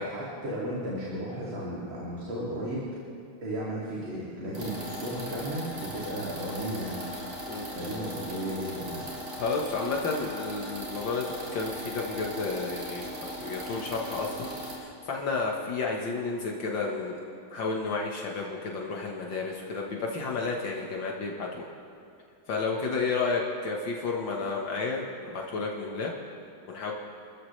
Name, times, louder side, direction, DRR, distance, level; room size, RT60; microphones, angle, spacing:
voice 1, 0.0-2.8 3.4-9.0, right 1 dB, 80° right, -7 dB, 3.5 m, -35 dB
sound 1, 4.5-14.7, equal, 60° right, 4.1 m, -38 dB
voice 2, 9.3-17.2 17.5-21.7 22.5-26.1 26.7-26.9, left 4 dB, 70° left, -1 dB, 2.1 m, -31 dB
29.0 x 14.0 x 3.3 m, 2.6 s
omnidirectional pair, 2.1 m